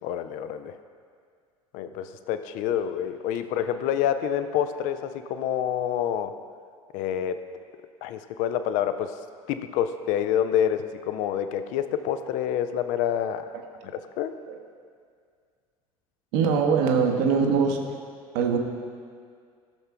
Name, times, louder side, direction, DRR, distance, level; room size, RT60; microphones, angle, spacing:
voice 1, 0.0-0.8 1.7-6.3 6.9-7.4 8.0-9.1 9.5-13.5 13.8-14.3, left 9 dB, 45° left, 10 dB, 0.4 m, -27 dB
voice 2, 16.3-17.8 18.3-18.6, right 6 dB, 50° right, 3 dB, 0.9 m, -22 dB
14.5 x 6.6 x 2.3 m, 2.1 s
figure-of-eight pair, 70°, 18 cm